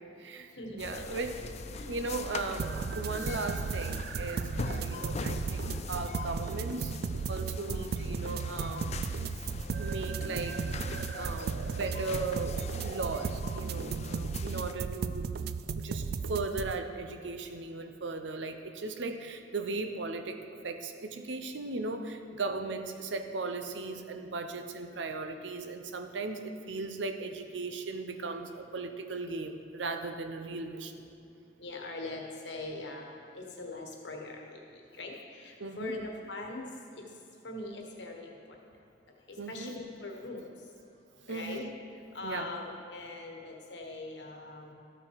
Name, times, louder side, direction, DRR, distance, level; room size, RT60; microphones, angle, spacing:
voice 1, 0.0-0.5 0.8-1.3 1.9-7.0 7.3-8.9 9.8-15.3 15.8-31.0 35.6-36.0 39.4-39.7 41.3-41.7 42.2-42.5, right 3 dB, 85° right, 7 dB, 0.7 m, -37 dB
voice 2, 0.5-1.1 1.7-1.9 7.7-7.9 31.6-34.5 35.0-36.7 37.4-38.3 39.5-40.4 41.3-41.7 42.1-44.7, left 2 dB, 70° left, 1 dB, 1.4 m, -41 dB
sound 1, 0.8-14.7, left 4 dB, 40° left, 0.4 m, -42 dB
sound 2, 2.6-16.7, right 5 dB, 60° right, 0.3 m, -35 dB
13.0 x 6.0 x 4.8 m, 2.7 s
head